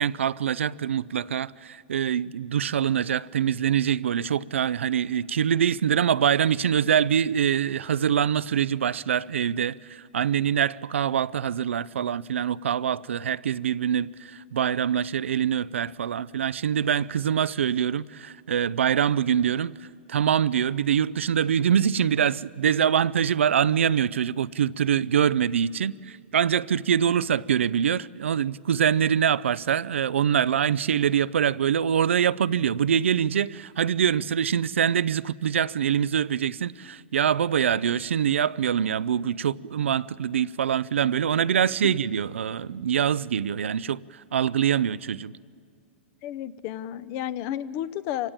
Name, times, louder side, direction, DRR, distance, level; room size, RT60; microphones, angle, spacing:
voice 1, 0.0-19.7 20.1-45.3, right 8 dB, 90° right, 0.5 m, -24 dB
voice 2, 46.2-48.3, left 11 dB, 40° left, 0.7 m, -32 dB
26.0 x 16.5 x 8.9 m
hypercardioid pair, 130°, 6 cm